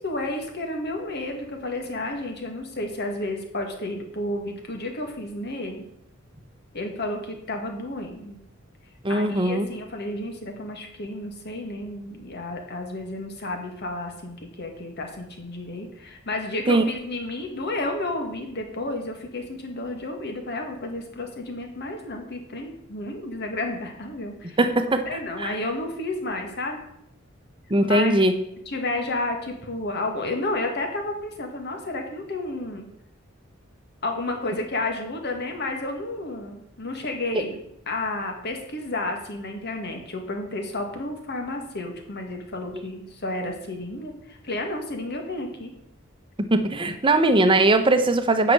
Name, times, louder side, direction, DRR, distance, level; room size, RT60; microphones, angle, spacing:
voice 1, 0.0-5.9 6.7-8.4 9.1-24.6 25.1-26.8 27.8-28.1 28.7-32.9 34.0-37.6 37.9-45.7, left 2 dB, 55° left, 3 dB, 1.9 m, -31 dB
voice 2, 9.0-9.7 16.7-16.8 24.6-25.5 27.7-28.3 46.5-48.5, right 2 dB, 25° right, 8 dB, 0.9 m, -20 dB
9.2 x 5.9 x 6.5 m, 0.77 s
head